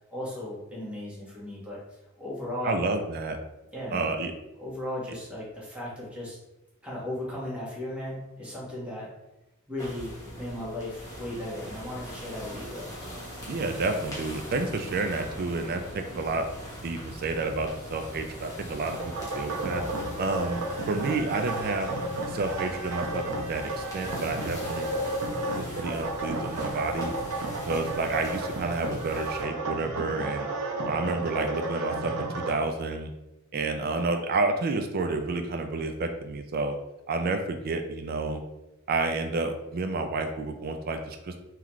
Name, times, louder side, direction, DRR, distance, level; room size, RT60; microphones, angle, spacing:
voice 1, 0.1-2.7 3.7-4.1 4.6-6.4 6.8-9.1 9.7-12.9, left 1 dB, 5° right, -7 dB, 1.4 m, -36 dB
voice 2, 2.6-3.4 3.9-4.3 13.5-16.4 16.8-19.8 20.2-21.9 22.3-24.9 25.5-27.1 27.6-30.5 30.8-33.1 33.5-36.8 37.1-38.4 38.9-41.3, right 3 dB, 45° right, 6 dB, 0.4 m, -30 dB
sound 1, 9.8-29.4, equal, 15° left, 1.0 m, -41 dB
sound 2, 18.8-32.5, right 2 dB, 75° right, 0.7 m, -33 dB
3.9 x 2.9 x 3.0 m, 0.94 s
head